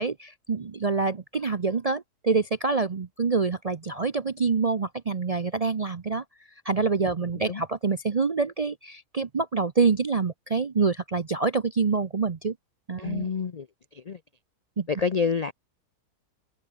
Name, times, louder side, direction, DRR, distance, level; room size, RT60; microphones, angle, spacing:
voice 1, 0.0-6.2 6.6-12.5 12.9-13.3 14.8-14.9, right 4 dB, 45° right, 0.4 m, -26 dB
voice 2, 13.0-13.7 13.9-14.2 14.9-15.5, left 5 dB, 65° left, 0.3 m, -28 dB
omnidirectional pair, 1.6 m